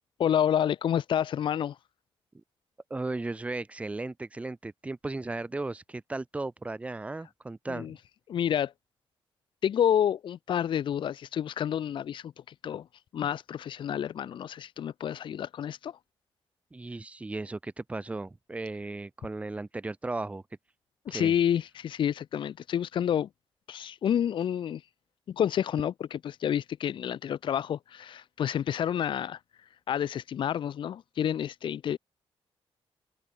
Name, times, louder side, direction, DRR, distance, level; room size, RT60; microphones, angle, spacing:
voice 1, 0.2-1.8 7.8-7.9 8.3-8.7 9.6-12.3 12.6-12.9 13.1-16.0 21.1-23.3 23.7-24.8 25.3-29.4 29.9-32.0, left 9 dB, 55° left, 0.9 m, -29 dB
voice 2, 2.9-8.0 16.7-20.4 21.1-21.3, right 2 dB, 15° right, 1.4 m, -36 dB
wide cardioid pair, 180°, 10 cm